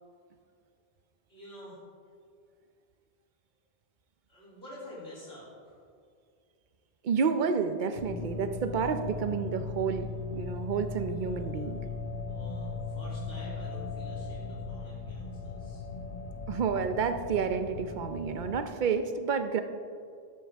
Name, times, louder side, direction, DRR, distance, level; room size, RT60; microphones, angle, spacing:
voice 1, 1.3-1.8 4.3-5.8 12.3-15.8, left 1 dB, 80° left, -8 dB, 3.6 m, -48 dB
voice 2, 7.0-11.8 16.5-19.6, right 6 dB, 55° right, 8 dB, 0.8 m, -30 dB
sound 1, 8.0-18.6, left 4 dB, 45° left, 0.8 m, -38 dB
12.0 x 12.0 x 3.5 m, 2.2 s
omnidirectional pair, 1.0 m